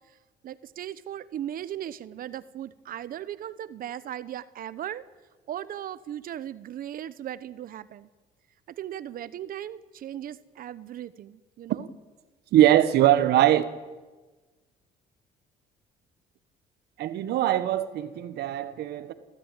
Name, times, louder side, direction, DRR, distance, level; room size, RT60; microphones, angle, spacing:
voice 1, 0.4-5.0 5.5-8.1 8.7-11.9, right 11 dB, 55° right, 0.9 m, -37 dB
voice 2, 12.5-13.6 17.0-19.1, right 13 dB, 75° right, 1.4 m, -21 dB
29.5 x 14.0 x 9.1 m
cardioid pair, 110°, 17 cm